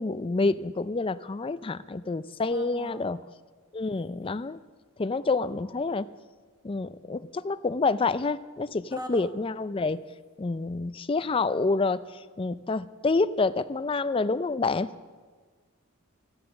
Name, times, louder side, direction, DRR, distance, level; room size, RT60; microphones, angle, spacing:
voice 1, 0.0-3.2 3.7-4.6 5.0-6.1 6.6-10.0 10.4-14.9, left 3 dB, 25° left, 15 dB, 0.4 m, -28 dB
voice 2, 2.5-3.1 8.9-9.3, right 1 dB, 15° right, 6 dB, 1.2 m, -40 dB
14.0 x 12.5 x 7.0 m, 1.5 s
head